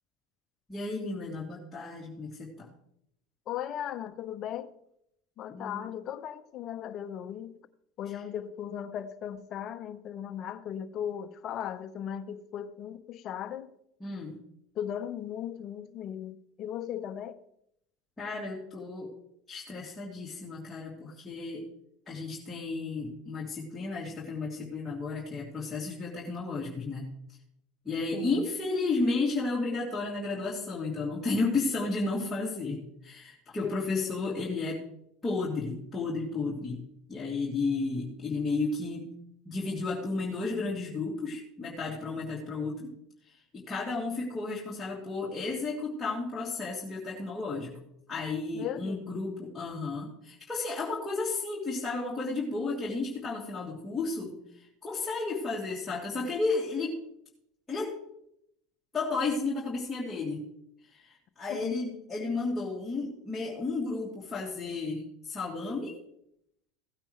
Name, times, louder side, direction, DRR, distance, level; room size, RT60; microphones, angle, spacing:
voice 1, 0.7-2.7 5.5-5.9 8.1-8.2 14.0-14.3 18.2-19.1 19.5-21.6 22.1-27.1 27.8-34.8 35.2-36.8 37.1-39.1 39.4-42.9 43.2-47.8 48.1-57.0 57.7-57.9 58.9-60.5 60.9-65.9, left 3 dB, 15° left, 2.8 m, -33 dB
voice 2, 3.5-4.7 5.4-7.5 8.0-13.7 14.7-17.4 28.1-28.5 33.6-34.3 48.5-49.1 61.5-61.8, left 9 dB, 45° left, 0.9 m, -37 dB
16.5 x 9.0 x 3.3 m
hypercardioid pair, 90°, 0 cm